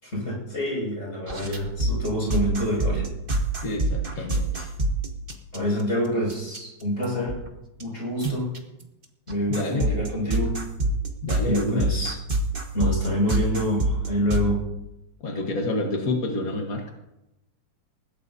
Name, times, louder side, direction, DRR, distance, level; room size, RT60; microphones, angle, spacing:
voice 1, 0.0-3.1 4.1-4.3 5.5-7.4 7.8-8.5 9.3-10.6 11.4-12.2 12.7-14.6, equal, 20° left, -3 dB, 6.3 m, -27 dB
sound 1, 1.3-5.8 6.3-6.6 7.0-7.5 7.8-7.9 8.2-8.6 9.3-14.5, right 2 dB, 80° right, 0.4 m, -26 dB
voice 2, 3.6-4.7 9.5-9.9 11.2-11.9 15.2-16.9, left 2 dB, 50° left, 2 dB, 1.0 m, -28 dB
21.0 x 16.0 x 2.7 m, 0.94 s
omnidirectional pair, 3.4 m